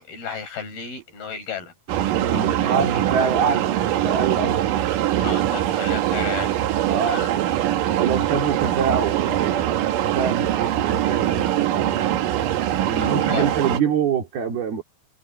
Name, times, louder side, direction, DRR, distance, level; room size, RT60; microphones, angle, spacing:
voice 1, 0.0-1.7 2.1-3.0 5.2-6.6 7.1-7.3 12.8-13.5, left 7 dB, 80° left, 9.0 m, -34 dB
sound 1, 1.9-13.8, right 12 dB, 70° right, 2.7 m, -22 dB
voice 2, 2.2-3.7 4.0-4.6 6.9-7.2 8.0-12.1 12.8-14.8, right 6 dB, 90° right, 5.5 m, -25 dB
omnidirectional pair, 4.3 m